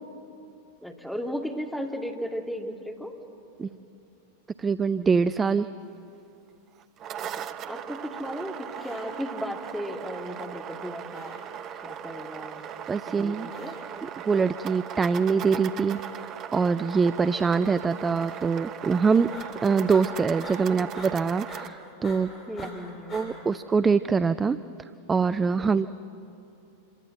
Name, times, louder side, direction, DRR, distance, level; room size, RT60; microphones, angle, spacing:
voice 1, 0.8-3.2 7.2-11.4 11.8-12.6 13.1-13.7 17.2-17.3 20.8-20.9 22.5-23.5 25.6-25.9, equal, ahead, 2 dB, 2.3 m, -36 dB
voice 2, 4.6-5.7 12.9-13.7 14.0-16.0 16.5-19.3 19.6-22.3 22.6-22.7 23.1-24.6 25.1-25.9, right 5 dB, 15° right, 14 dB, 0.5 m, -24 dB
sound 1, 6.8-21.7, right 9 dB, 35° right, 0.8 m, -38 dB
sound 2, 7.7-8.4 8.7-9.5 10.1-10.8 11.1-11.8 12.4-13.1 13.5-14.1 14.7-15.4 15.9-16.6 17.0-17.5 18.2-18.8 19.1-23.3, left 2 dB, 25° left, 6.2 m, -48 dB
27.0 x 23.0 x 7.9 m, 2.8 s
figure-of-eight pair, 90°, 0 cm